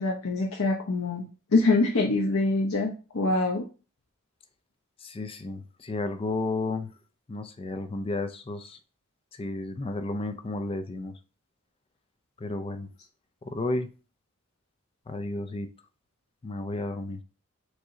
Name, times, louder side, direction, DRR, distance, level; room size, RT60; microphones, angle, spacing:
voice 1, 0.0-3.7, left 3 dB, 85° left, 0 dB, 0.7 m, -25 dB
voice 2, 5.0-6.9 7.3-8.8 9.4-11.1 12.4-12.9 13.4-13.9 15.1-15.7 16.4-17.2, left 2 dB, 25° left, 9 dB, 0.4 m, -32 dB
4.8 x 2.7 x 3.7 m, 0.33 s
head